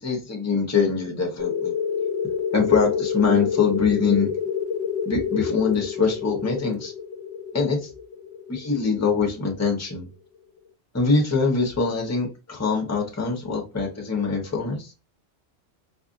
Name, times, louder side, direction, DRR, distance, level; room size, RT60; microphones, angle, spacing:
voice 1, 0.0-1.7 2.2-4.3 5.0-6.9 7.5-7.9 8.5-10.1 10.9-14.9, left 5 dB, 15° left, 1 dB, 0.9 m, -23 dB
sound 1, 1.4-9.7, left 7 dB, 40° left, 0.7 m, -28 dB
4.4 x 2.5 x 2.5 m, 0.30 s
omnidirectional pair, 1.3 m